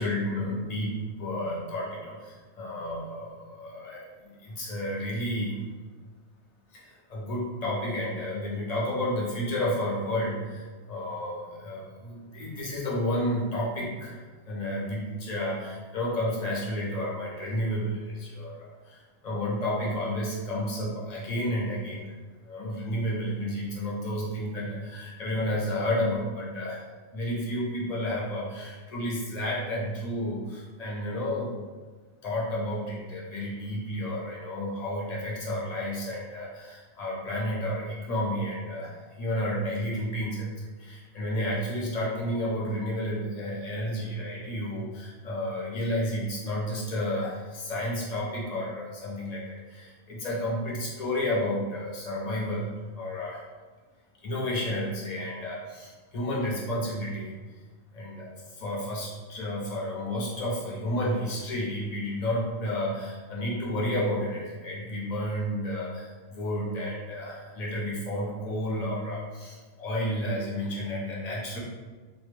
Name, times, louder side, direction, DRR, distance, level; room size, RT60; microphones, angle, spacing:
voice 1, 0.0-5.6 6.7-14.2 14.5-22.1 22.4-26.8 27.1-31.6 32.2-52.6 52.9-53.4 54.2-57.3 57.9-71.6, left 1 dB, 50° left, -5 dB, 0.5 m, -31 dB
2.2 x 2.1 x 3.0 m, 1.4 s
omnidirectional pair, 1.2 m